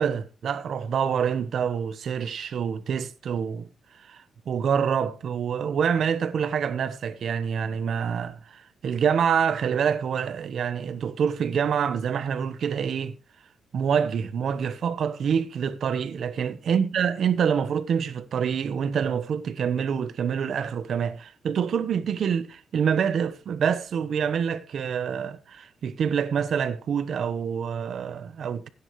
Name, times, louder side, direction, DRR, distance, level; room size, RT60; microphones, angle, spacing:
voice 1, 0.0-3.7 4.0-13.1 13.7-28.7, right 7 dB, 60° right, 1.0 m, -26 dB
16.5 x 10.0 x 3.2 m
wide cardioid pair, 160°, 0 cm